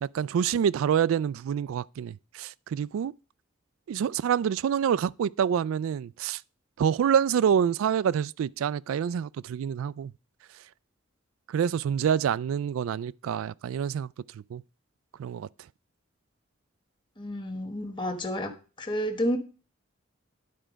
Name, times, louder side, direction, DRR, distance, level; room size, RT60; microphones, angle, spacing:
voice 1, 0.0-3.1 3.9-6.4 6.8-10.1 11.5-14.1 14.3-14.6 15.2-15.5, right 8 dB, 90° right, 0.3 m, -27 dB
voice 2, 17.2-18.5 18.8-19.4, equal, 25° left, 1.2 m, -30 dB
11.0 x 4.6 x 5.0 m
head